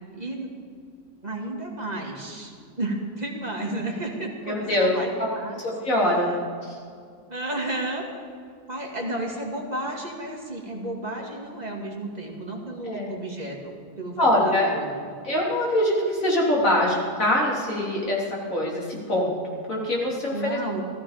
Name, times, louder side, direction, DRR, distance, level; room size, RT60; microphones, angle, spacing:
voice 1, 0.1-0.5 1.2-2.5 2.8-5.6 7.3-8.0 8.7-14.4 14.7-14.9 20.3-20.8, right 1 dB, 25° right, -1 dB, 2.2 m, -32 dB
voice 2, 4.5-4.9 5.6-6.3 6.6-6.8 12.8-13.1 14.2-14.7 15.2-19.4 19.7-20.8, left 1 dB, 55° left, -3 dB, 3.6 m, -23 dB
15.0 x 14.0 x 5.0 m, 2.2 s
omnidirectional pair, 1.7 m